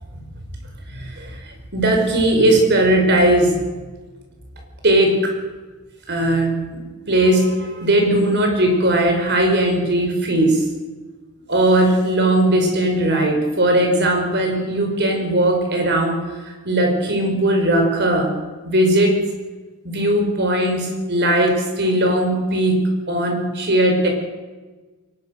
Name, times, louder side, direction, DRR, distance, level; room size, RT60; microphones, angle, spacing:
voice 1, 0.9-1.3 1.7-3.6 4.8-5.3 6.1-10.6 11.5-16.2 16.7-18.3 18.6-19.2 19.8-24.1, right 1 dB, 50° right, 3 dB, 5.4 m, -18 dB
22.5 x 19.5 x 6.7 m, 1.3 s
head